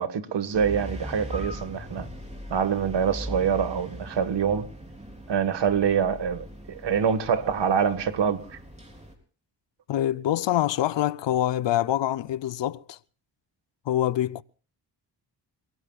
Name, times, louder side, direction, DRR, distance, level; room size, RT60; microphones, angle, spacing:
voice 1, 0.0-2.1 2.5-4.7 5.3-8.6, right 7 dB, 75° right, 1.6 m, -25 dB
sound 1, 0.5-9.1, equal, 15° right, 3.9 m, -40 dB
voice 2, 9.9-13.0 13.9-14.4, left 12 dB, 85° left, 0.6 m, -25 dB
30.0 x 17.0 x 2.3 m
cardioid pair, 90°, 42 cm